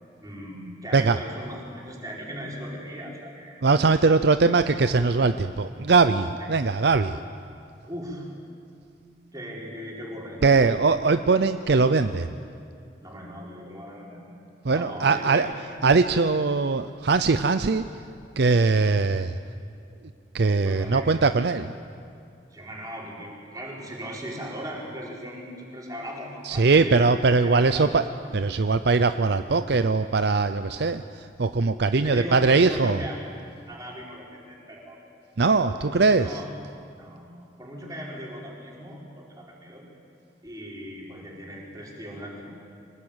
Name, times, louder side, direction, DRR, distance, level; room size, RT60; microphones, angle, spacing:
voice 1, 0.2-4.2 6.4-6.5 7.9-8.3 9.3-10.8 13.0-14.2 14.7-15.5 20.6-21.1 22.5-28.0 30.7-30.9 32.0-33.2 33.7-35.0 35.4-36.5 37.0-39.9 40.4-42.4, equal, 20° right, -3 dB, 4.7 m, -38 dB
voice 2, 3.6-7.2 10.4-12.3 14.6-15.5 15.8-17.9 18.4-19.4 20.3-21.7 26.4-28.1 28.3-33.0 35.4-36.4, right 4 dB, 60° right, 10 dB, 0.6 m, -21 dB
25.0 x 19.5 x 8.9 m, 2.5 s
head